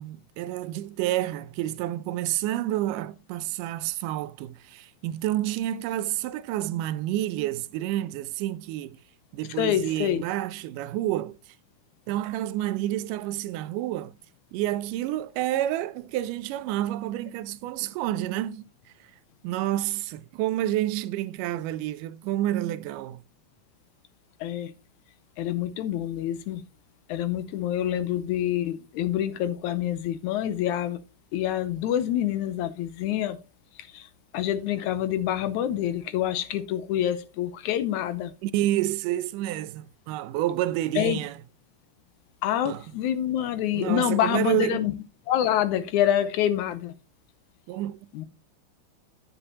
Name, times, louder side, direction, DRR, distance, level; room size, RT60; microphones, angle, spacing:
voice 1, 0.0-9.0 9.3-11.4 12.1-14.2 14.5-18.7 19.4-23.2 38.4-41.4 42.7-42.8 43.7-44.9 47.7-48.0, right 14 dB, 85° right, 2.2 m, -29 dB
voice 2, 9.6-10.2 24.4-24.7 25.4-26.6 27.1-31.0 31.3-33.4 33.8-34.1 34.3-38.3 41.0-41.2 42.4-45.0 45.3-46.9 48.1-48.3, left 11 dB, 75° left, 2.0 m, -26 dB
10.0 x 8.3 x 2.8 m
omnidirectional pair, 3.7 m